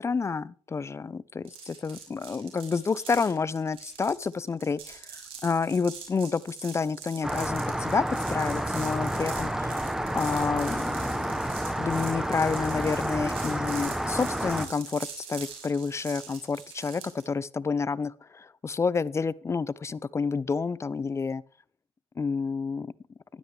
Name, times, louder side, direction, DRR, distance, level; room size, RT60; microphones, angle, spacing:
voice 1, 0.0-5.0 5.4-9.8 10.1-10.9 11.1-21.4 22.2-22.9, left 5 dB, 25° left, 0.7 m, -29 dB
sound 1, 1.4-17.3, right 7 dB, 65° right, 5.5 m, -44 dB
Rain, 7.2-14.7, right 1 dB, 5° right, 1.4 m, -30 dB
15.5 x 12.0 x 3.4 m
hypercardioid pair, 60°, 10 cm